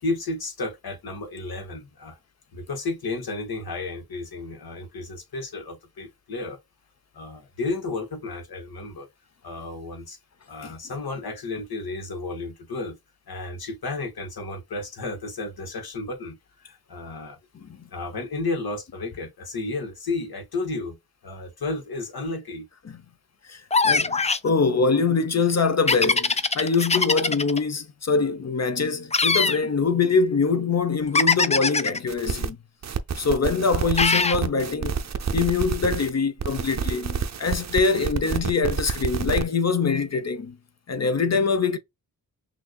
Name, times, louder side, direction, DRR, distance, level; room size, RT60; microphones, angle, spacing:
voice 1, 0.0-2.2 2.5-6.6 7.1-9.1 9.4-10.2 10.5-13.0 13.3-16.3 16.6-17.4 17.9-21.0 21.2-22.7, left 3 dB, 80° left, 1.9 m, -32 dB
voice 2, 23.5-32.6 33.2-35.0 35.3-40.6 40.9-41.8, left 4 dB, 45° left, 0.7 m, -24 dB
sound 1, 23.7-24.5 25.9-27.6 29.1-29.6 31.1-32.0 34.0-34.4, left 4 dB, 20° left, 0.4 m, -21 dB
sound 2, 32.1-32.5 32.8-36.1 36.4-39.4, right 6 dB, 50° right, 0.6 m, -29 dB
6.2 x 2.6 x 2.3 m
wide cardioid pair, 105°, 36 cm